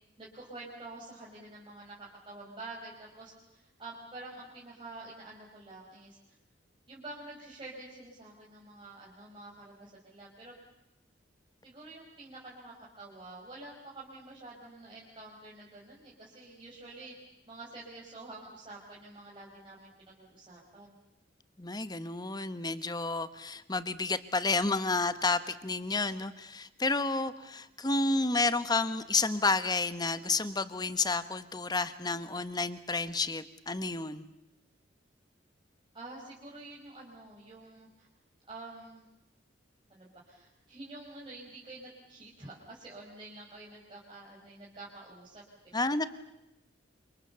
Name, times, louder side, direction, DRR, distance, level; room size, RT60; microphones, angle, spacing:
voice 1, 0.2-6.2 6.9-10.5 11.6-17.1 17.5-21.0 35.9-38.1 38.5-39.1 39.9-45.4 45.8-46.1, right 2 dB, 25° right, -5 dB, 5.2 m, -48 dB
voice 2, 21.6-34.2 45.7-46.0, left 3 dB, 20° left, 12 dB, 1.2 m, -30 dB
29.5 x 26.5 x 7.0 m, 0.91 s
head